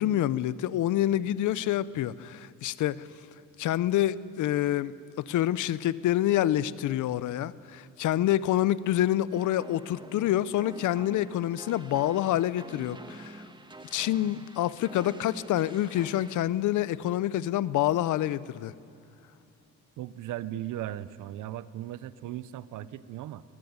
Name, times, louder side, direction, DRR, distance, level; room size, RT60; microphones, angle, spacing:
voice 1, 0.0-3.1 3.6-13.4 13.9-18.7, left 13 dB, 80° left, 0.8 m, -27 dB
sound 1, 9.3-16.4, right 2 dB, 15° right, 1.6 m, -47 dB
voice 2, 20.0-23.4, right 13 dB, 85° right, 0.9 m, -37 dB
23.5 x 19.0 x 9.7 m
cardioid pair, 90°, 30 cm